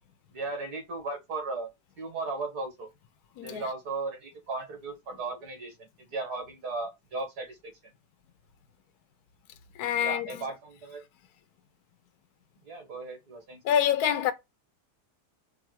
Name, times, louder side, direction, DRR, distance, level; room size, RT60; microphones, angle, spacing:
voice 1, 0.3-1.7 2.0-2.9 3.4-7.7 10.0-11.0 12.6-13.6, right 3 dB, 70° right, 2.1 m, -36 dB
voice 2, 9.7-10.5 13.6-14.3, left 9 dB, 70° left, 1.2 m, -26 dB
4.7 x 2.6 x 4.4 m
omnidirectional pair, 1.8 m